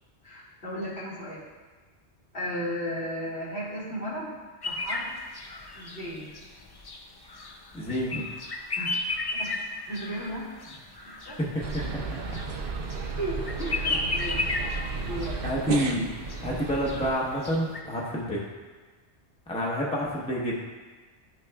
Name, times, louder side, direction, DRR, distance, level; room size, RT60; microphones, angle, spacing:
voice 1, 0.2-1.4 2.3-4.4 4.6-5.1 5.7-6.3 8.8-8.9 9.3-9.5 9.9-10.5 11.2-11.4 13.0-14.5 15.0-15.4, equal, 65° left, -8 dB, 2.4 m, -35 dB
sound 1, 4.6-17.8, left 3 dB, 35° left, 0.4 m, -34 dB
voice 2, 7.7-8.2 11.4-12.0 15.4-16.1 16.4-18.4 19.5-20.6, equal, 5° left, -4 dB, 1.0 m, -28 dB
sound 2, 11.6-17.1, right 4 dB, 60° right, 0.8 m, -33 dB
11.5 x 6.2 x 2.3 m, 1.3 s
omnidirectional pair, 1.2 m